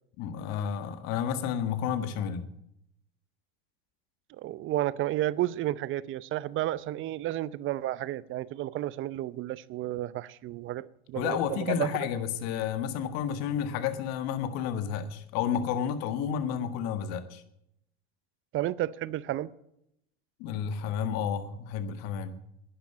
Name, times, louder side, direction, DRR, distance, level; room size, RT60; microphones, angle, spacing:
voice 1, 0.2-2.5 11.2-17.4 20.4-22.4, left 8 dB, 60° left, 10 dB, 1.6 m, -31 dB
voice 2, 4.4-11.9 18.5-19.5, right 14 dB, 45° right, 20 dB, 0.6 m, -32 dB
11.0 x 10.5 x 8.9 m, 0.78 s
hypercardioid pair, 90°, 29 cm